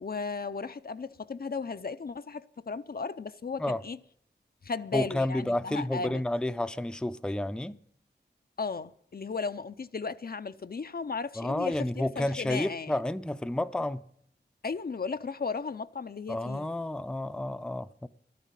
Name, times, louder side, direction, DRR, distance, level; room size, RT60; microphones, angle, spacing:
voice 1, 0.0-4.0 4.6-6.2 8.6-13.0 14.6-16.7, left 4 dB, 55° left, 0.5 m, -35 dB
voice 2, 4.9-7.8 11.4-14.0 16.3-18.1, left 1 dB, 5° left, 0.5 m, -30 dB
12.5 x 10.5 x 7.3 m
wide cardioid pair, 80°, 19 cm